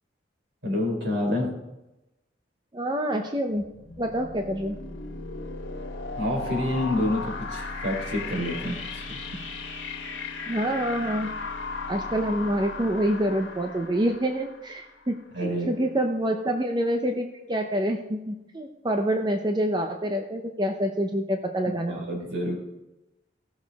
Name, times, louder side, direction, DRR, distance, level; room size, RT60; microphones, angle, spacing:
voice 1, 0.6-1.5 6.1-9.2 15.3-15.7 21.9-22.5, left 1 dB, 70° right, -1 dB, 3.8 m, -28 dB
voice 2, 2.7-3.7 4.0-4.8 10.5-11.3 11.9-15.2 15.7-22.0, right 1 dB, 25° right, 4 dB, 0.7 m, -27 dB
sound 1, 3.6-15.3, left 3 dB, 85° left, 1.7 m, -36 dB
17.0 x 6.5 x 3.5 m, 0.96 s
head